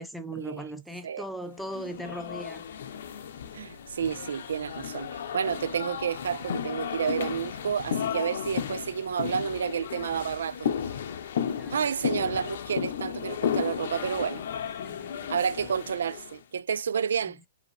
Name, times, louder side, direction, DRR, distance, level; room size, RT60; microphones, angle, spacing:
voice 1, 0.0-2.6 11.5-12.2 14.8-15.3 17.2-17.5, right 1 dB, ahead, 0.4 m, -39 dB
sound 1, 1.7-16.4, left 8 dB, 50° left, 0.7 m, -34 dB
voice 2, 3.5-10.7 11.7-14.4 15.3-17.4, right 7 dB, 85° right, 0.3 m, -30 dB
4.9 x 2.8 x 3.1 m
hypercardioid pair, 175°, 0 cm